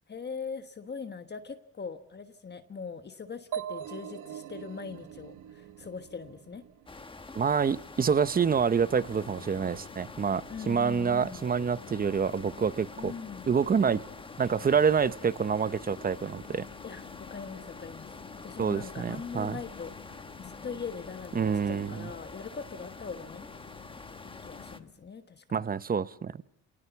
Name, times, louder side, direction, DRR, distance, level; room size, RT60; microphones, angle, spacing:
voice 1, 0.1-6.6 10.5-11.4 13.0-13.5 16.8-17.0 17.3-18.1 18.4-23.5 24.2-25.7, left 5 dB, 35° left, 8 dB, 1.3 m, -41 dB
sound 1, 3.5-7.2, right 9 dB, 85° right, 1.0 m, -41 dB
sound 2, 6.9-24.8, left 3 dB, 15° left, 1.2 m, -47 dB
voice 2, 7.3-13.1 13.5-14.0 14.4-16.7 18.6-19.6 21.3-22.1 25.5-26.3, right 6 dB, 30° right, 16 dB, 0.7 m, -27 dB
sound 3, 8.5-24.9, left 10 dB, 85° left, 1.9 m, -51 dB
27.5 x 18.5 x 7.0 m, 0.84 s
cardioid pair, 90°, 30 cm